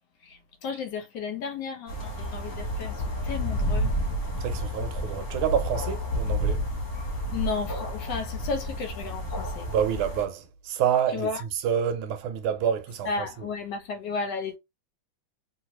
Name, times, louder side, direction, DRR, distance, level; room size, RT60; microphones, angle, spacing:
voice 1, 0.2-3.9 7.3-9.6 11.1-11.4 13.0-14.6, left 4 dB, 65° left, 1.2 m, -33 dB
sound 1, 1.9-10.3, equal, 45° left, 1.2 m, -30 dB
voice 2, 4.4-6.6 9.7-13.1, right 8 dB, 80° right, 1.5 m, -27 dB
3.2 x 2.8 x 2.9 m
omnidirectional pair, 2.3 m